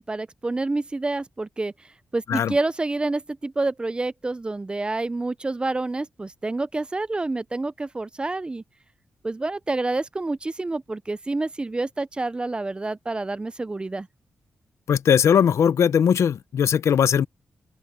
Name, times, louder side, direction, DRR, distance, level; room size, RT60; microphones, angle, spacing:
voice 1, 0.0-1.7 2.1-8.6 9.2-14.1, right 2 dB, 20° right, 0.5 m, -28 dB
voice 2, 14.9-17.3, left 8 dB, 80° left, 0.6 m, -19 dB
open air
wide cardioid pair, 115°, 5 cm